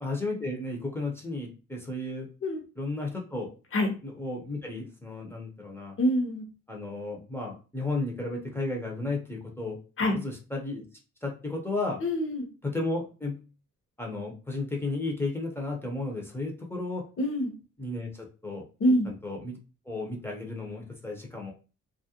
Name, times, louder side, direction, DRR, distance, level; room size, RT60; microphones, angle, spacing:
voice 1, 0.0-2.3 2.8-3.5 4.0-6.0 6.7-9.8 10.1-10.8 11.2-12.0 12.6-13.4 14.0-17.0 17.8-18.6 19.0-19.6 19.9-21.5, left 2 dB, 10° left, -1 dB, 0.7 m, -33 dB
voice 2, 6.0-6.5 10.0-10.2 12.0-12.4 17.2-17.5 18.8-19.1, equal, 45° left, 3 dB, 0.9 m, -25 dB
2.4 x 2.0 x 2.8 m, 0.34 s
cardioid pair, 90°, 30 cm